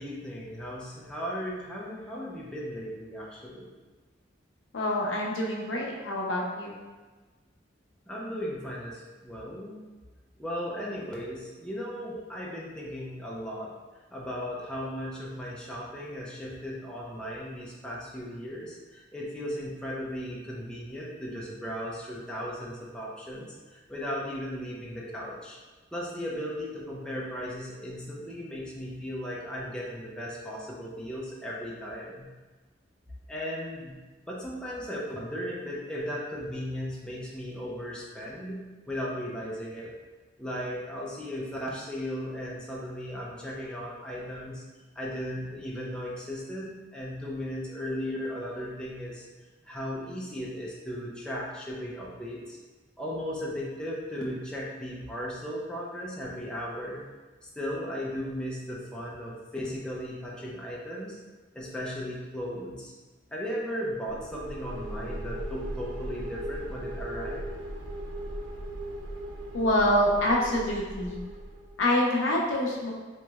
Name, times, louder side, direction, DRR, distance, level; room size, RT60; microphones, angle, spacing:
voice 1, 0.0-3.7 8.1-9.8 10.4-13.7 14.1-25.6 25.9-32.3 33.3-34.0 34.3-39.9 40.4-44.6 45.0-49.2 49.7-52.6 53.0-57.0 57.6-61.2 61.5-62.9 63.3-67.5, equal, 5° left, -5 dB, 0.4 m, -36 dB
voice 2, 4.7-6.8 69.5-71.2 71.8-72.9, left 1 dB, 85° left, -2 dB, 0.6 m, -26 dB
sound 1, 64.1-71.8, right 1 dB, 80° right, 0.4 m, -38 dB
3.0 x 3.0 x 2.3 m, 1.3 s
head